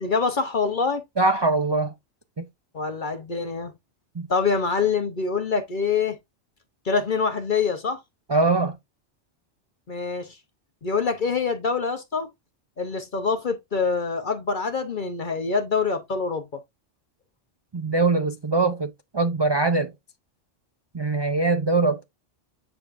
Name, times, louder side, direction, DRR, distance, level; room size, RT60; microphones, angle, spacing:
voice 1, 0.0-1.0 2.7-3.7 4.3-6.2 6.8-8.0 9.9-10.4 10.8-12.3 12.8-16.6, left 5 dB, 45° left, 0.9 m, -25 dB
voice 2, 1.2-1.9 2.4-2.5 4.2-4.3 8.3-8.7 17.7-19.9 20.9-22.0, right 3 dB, 35° right, 0.4 m, -22 dB
8.7 x 4.8 x 2.5 m
omnidirectional pair, 1.2 m